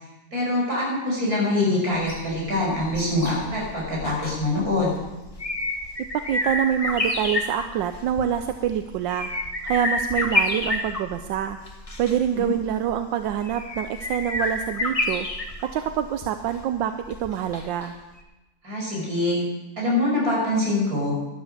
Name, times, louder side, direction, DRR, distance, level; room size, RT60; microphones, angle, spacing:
voice 1, 0.3-4.9 12.3-12.5 18.6-19.4 19.8-21.1, left 2 dB, 55° right, -4 dB, 6.6 m, -24 dB
sound 1, 1.9-17.9 18.2-18.3, left 2 dB, 20° left, 1.5 m, -30 dB
voice 2, 6.1-9.3 9.6-11.6 12.0-15.3 15.7-17.9, right 10 dB, 85° right, 8 dB, 1.4 m, -26 dB
13.0 x 12.0 x 6.7 m, 1.1 s
omnidirectional pair, 2.0 m